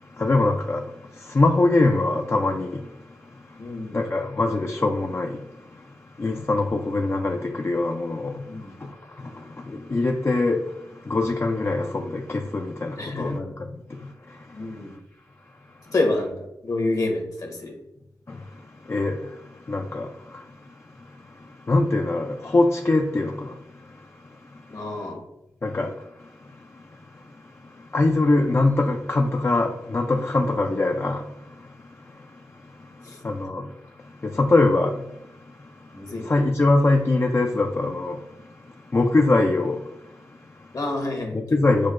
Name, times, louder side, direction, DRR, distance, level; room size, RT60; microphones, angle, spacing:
voice 1, 0.0-15.0 15.7-15.9 18.3-25.1 25.6-40.8 41.3-41.9, left 2 dB, 35° left, 0.4 m, -25 dB
voice 2, 3.6-4.0 8.5-8.7 13.0-13.4 14.5-14.9 15.9-17.7 24.7-25.2 33.0-33.2 35.9-36.2 40.7-41.9, left 2 dB, 50° left, 1.1 m, -28 dB
6.2 x 2.1 x 2.4 m
cardioid pair, 50°, 7 cm